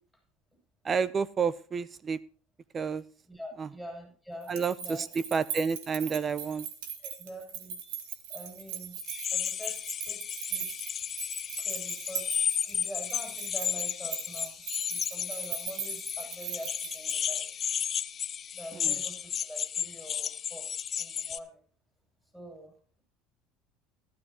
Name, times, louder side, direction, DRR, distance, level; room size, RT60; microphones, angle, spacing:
voice 1, 0.8-2.2 2.7-3.0 3.6-3.7 4.5-5.1 5.3-6.6 18.8-18.9, right 6 dB, 30° right, 18 dB, 0.7 m, -30 dB
voice 2, 3.3-5.2 7.0-7.8 8.3-9.0 9.3-10.8 11.5-12.4 12.6-14.6 14.9-17.5 18.5-21.6 22.3-23.0, equal, 5° right, 0 dB, 6.9 m, -45 dB
sound 1, 4.4-17.5, right 8 dB, 85° right, 2.2 m, -40 dB
sound 2, 9.0-21.4, left 8 dB, 35° left, 0.6 m, -33 dB
14.5 x 13.5 x 3.0 m, 0.41 s
supercardioid pair, 115°, 0 cm